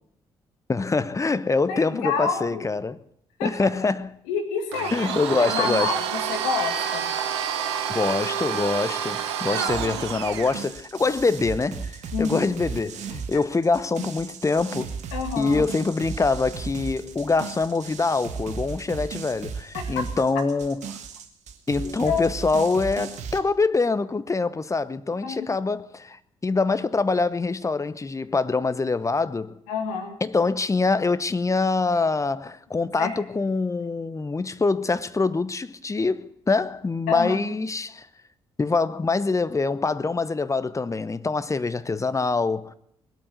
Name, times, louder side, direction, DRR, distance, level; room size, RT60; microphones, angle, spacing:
voice 1, 0.7-3.0 3.4-4.1 4.9-5.9 7.9-14.9 15.4-21.0 21.7-29.6 30.2-38.1 38.6-42.7, left 3 dB, 20° left, 0.9 m, -25 dB
voice 2, 1.7-2.7 3.4-3.7 4.3-7.1 9.5-9.7 12.1-12.5 15.1-15.6 19.7-19.9 21.8-22.2 25.2-25.4 29.7-30.2 33.0-33.1 37.1-37.5, left 6 dB, 70° left, 1.9 m, -28 dB
Domestic sounds home sounds, 4.7-10.6, right 8 dB, 80° right, 1.0 m, -28 dB
sound 1, 9.7-23.4, right 6 dB, 55° right, 1.5 m, -36 dB
19.5 x 8.7 x 8.2 m
figure-of-eight pair, 45°, 14 cm